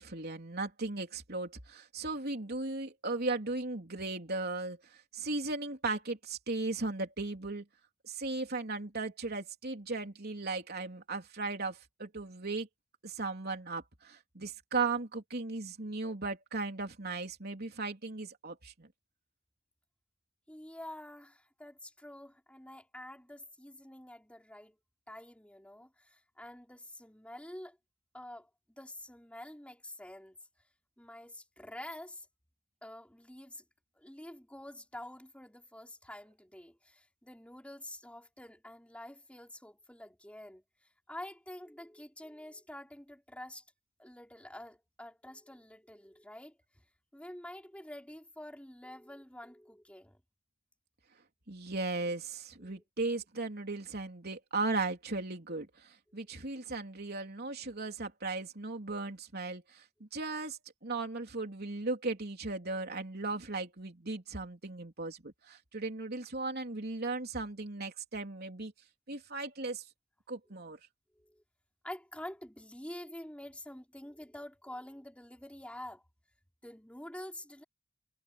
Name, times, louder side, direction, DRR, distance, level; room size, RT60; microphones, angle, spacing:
voice 1, 0.0-7.6 8.0-12.7 13.0-18.9 51.5-68.7 69.1-69.9 70.3-70.8, right 3 dB, 50° right, 3.5 m, -37 dB
voice 2, 20.5-24.8 25.1-27.8 28.1-30.4 31.0-32.3 32.8-33.6 33.9-40.6 41.1-43.6 44.0-46.8 47.1-50.2 52.6-52.8 56.1-56.4 71.1-71.4 71.8-76.0 76.6-77.6, left 1 dB, 5° left, 5.4 m, -48 dB
head